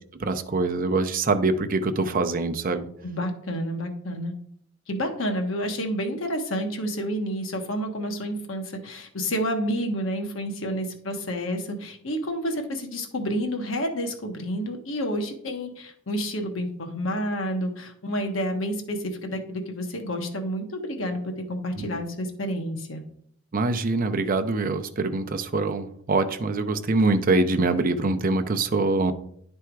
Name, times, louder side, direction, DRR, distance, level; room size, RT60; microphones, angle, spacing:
voice 1, 0.2-2.9 21.8-21.9 23.5-29.1, right 3 dB, 40° right, 9 dB, 0.6 m, -24 dB
voice 2, 3.0-4.3 4.9-23.0, equal, 70° left, 4 dB, 1.2 m, -29 dB
10.0 x 3.5 x 4.6 m, 0.66 s
head